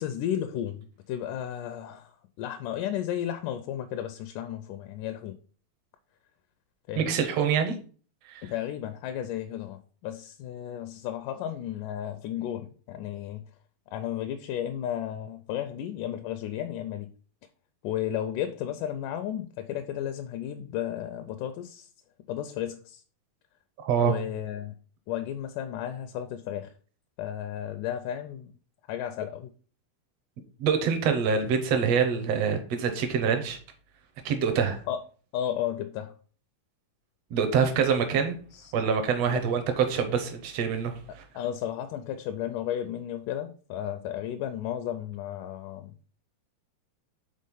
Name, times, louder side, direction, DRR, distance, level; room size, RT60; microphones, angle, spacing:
voice 1, 0.0-2.1 2.4-5.4 6.9-7.2 8.4-13.5 13.9-17.1 17.8-21.9 22.3-23.0 24.0-24.7 25.1-26.7 27.2-28.5 28.9-29.5 34.9-35.0 35.3-36.1 38.5-38.7 39.3-39.5 41.3-46.1, left 10 dB, 80° left, 1.9 m, -33 dB
voice 2, 7.0-7.8 8.3-8.4 23.8-24.1 30.6-33.6 34.3-34.8 37.3-38.4 38.7-41.2, right 6 dB, 65° right, 1.7 m, -25 dB
6.4 x 4.0 x 5.4 m
omnidirectional pair, 4.0 m